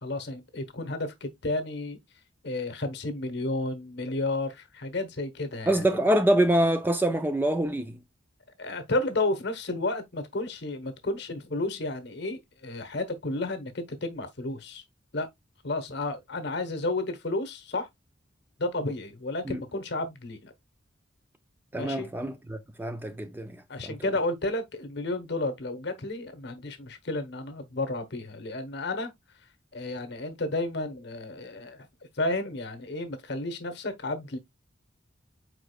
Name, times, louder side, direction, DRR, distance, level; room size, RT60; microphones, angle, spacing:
voice 1, 0.0-2.0 2.4-5.9 8.6-14.8 15.1-15.3 15.6-17.9 18.6-20.5 21.7-22.1 23.7-29.1 29.7-31.9 32.2-34.4, left 2 dB, 55° left, 1.0 m, -32 dB
voice 2, 5.7-8.0 19.5-19.6 21.7-24.0, right 1 dB, 10° right, 0.3 m, -25 dB
4.8 x 4.7 x 2.2 m
head